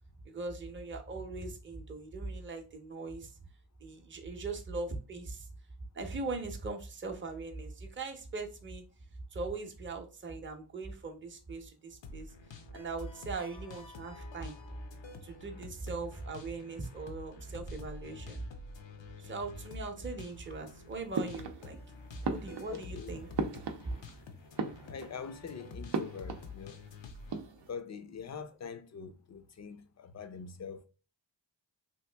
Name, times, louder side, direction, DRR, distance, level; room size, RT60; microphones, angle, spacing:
voice 1, 0.3-3.3 3.8-5.5 5.9-8.8 9.3-12.3 12.7-14.5 15.2-18.4 19.2-21.8 22.3-23.3, right 3 dB, 25° right, 0.7 m, -40 dB
sound 1, 12.0-27.4, left 3 dB, 70° left, 0.7 m, -49 dB
sound 2, 21.1-21.9 22.2-24.2 24.5-25.3 25.9-26.9 27.2-27.7, right 4 dB, 60° right, 0.6 m, -37 dB
voice 2, 22.7-23.2 24.6-26.8 27.7-30.9, left 6 dB, 40° left, 0.5 m, -44 dB
2.9 x 2.5 x 3.3 m
wide cardioid pair, 80°, 45 cm